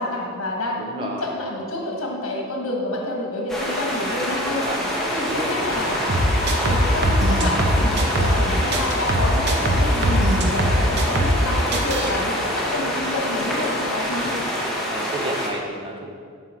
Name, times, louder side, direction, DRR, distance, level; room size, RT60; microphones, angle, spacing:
voice 1, 0.0-4.7 5.0-6.0 6.6-14.4, left 1 dB, 70° left, -1 dB, 1.5 m, -28 dB
voice 2, 0.8-1.3 4.6-4.9 5.3-5.7 11.0-11.1 14.2-14.4 14.9-16.1, right 1 dB, 25° right, 1 dB, 0.7 m, -31 dB
sound 1, 3.5-15.5, equal, ahead, 1.1 m, -26 dB
sound 2, 4.3-14.5, left 2 dB, 30° left, 1.2 m, -33 dB
sound 3, 6.1-8.4 8.7-11.4 11.7-12.1, equal, 50° right, 0.8 m, -20 dB
7.7 x 6.5 x 4.4 m, 2.1 s
head